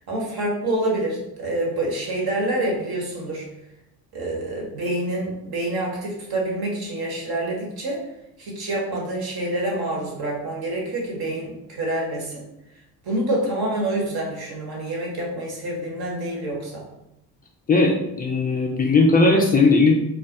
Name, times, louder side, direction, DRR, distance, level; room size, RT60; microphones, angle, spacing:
voice 1, 0.1-3.4 4.1-8.0 8.4-12.4 13.0-16.8, right 1 dB, 45° right, -2 dB, 1.3 m, -27 dB
voice 2, 17.7-19.9, left 3 dB, 20° left, 1 dB, 0.3 m, -17 dB
2.4 x 2.2 x 3.8 m, 0.86 s
hypercardioid pair, 55°, 50 cm